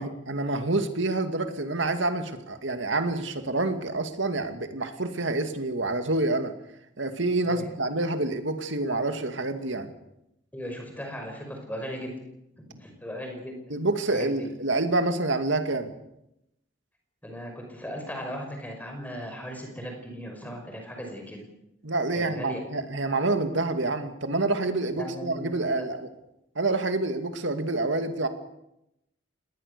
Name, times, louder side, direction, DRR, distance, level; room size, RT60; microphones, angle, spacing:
voice 1, 0.0-6.5 7.0-9.9 13.7-15.9 21.8-26.0 26.6-28.3, right 2 dB, 70° right, 7 dB, 2.4 m, -27 dB
voice 2, 10.5-12.2 12.6-13.6 14.1-14.5 17.2-21.5 22.1-22.6 25.0-25.9, equal, 10° left, 3 dB, 5.6 m, -37 dB
27.0 x 20.0 x 6.9 m, 0.84 s
head